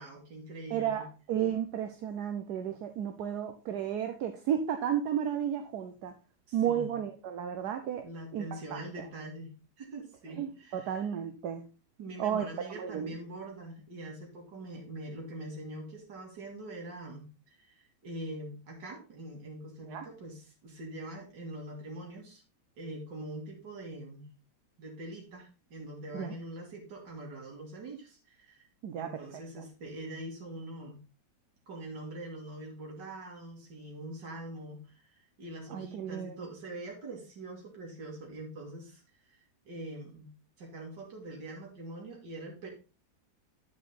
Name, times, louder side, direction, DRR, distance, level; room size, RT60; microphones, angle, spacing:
voice 1, 0.0-1.1 6.5-7.0 8.0-11.1 12.0-22.4 22.8-24.3 24.8-28.7 28.9-31.0 31.7-40.3 40.6-42.7, right 1 dB, 90° right, -1 dB, 2.7 m, -44 dB
voice 2, 0.7-6.1 6.5-8.0 8.3-9.1 10.4-11.6 12.2-13.2 19.9-20.0 26.1-26.3 28.8-29.2 29.6-29.7 35.7-36.5, right 9 dB, 70° right, 7 dB, 1.3 m, -33 dB
10.0 x 5.0 x 4.2 m, 0.33 s
omnidirectional pair, 1.8 m